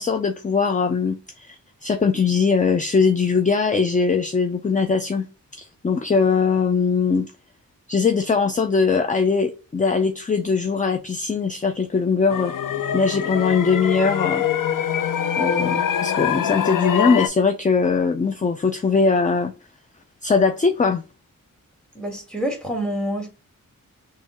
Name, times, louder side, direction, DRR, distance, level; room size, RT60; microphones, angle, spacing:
voice 1, 0.0-5.3 5.5-7.3 7.9-12.5 12.9-14.4 15.4-19.5 20.2-21.0, left 5 dB, 25° left, 0.4 m, -21 dB
sound 1, 12.3-17.3, left 8 dB, 70° left, 0.6 m, -24 dB
voice 2, 22.0-23.3, right 1 dB, ahead, 1.8 m, -27 dB
4.2 x 3.1 x 3.0 m
cardioid pair, 60°, 34 cm